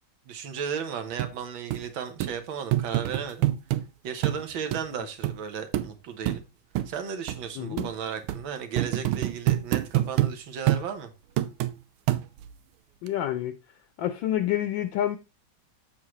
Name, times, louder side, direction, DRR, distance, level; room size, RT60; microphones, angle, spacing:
voice 1, 0.3-3.5 4.0-6.4 6.9-11.1, right 7 dB, 70° right, 1.8 m, -35 dB
sound 1, 1.2-1.3 1.7-1.8 2.2-2.3 2.7-3.8 4.2-4.4 4.7-4.8 5.2-5.4 5.7-5.9 6.3-6.4 6.7-6.9 7.3-7.4 7.8-7.9 8.3-8.4 8.8-10.3 10.7-10.9 11.4-11.7 12.1-12.5 13.1-13.2, right 15 dB, 90° right, 1.4 m, -25 dB
voice 2, 7.6-7.9 13.0-13.5 14.0-15.2, left 12 dB, 75° left, 1.2 m, -28 dB
7.4 x 6.4 x 3.0 m
omnidirectional pair, 2.3 m